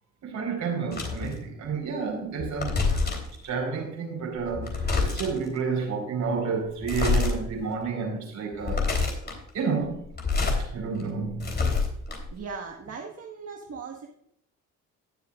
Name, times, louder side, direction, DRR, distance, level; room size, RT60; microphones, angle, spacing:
voice 1, 0.2-2.7 3.4-8.9 9.5-10.0 10.7-11.6, right 5 dB, 70° right, 1 dB, 4.6 m, -30 dB
sound 1, 0.9-1.3 2.4-3.4 4.4-5.5 6.8-7.3 7.8-7.9 8.5-9.4 10.0-10.6 11.0-12.4, left 4 dB, 35° left, 3.5 m, -26 dB
voice 2, 12.3-14.1, right 5 dB, 55° right, 1 dB, 1.6 m, -38 dB
18.5 x 7.4 x 2.5 m, 0.72 s
cardioid pair, 90°, 30 cm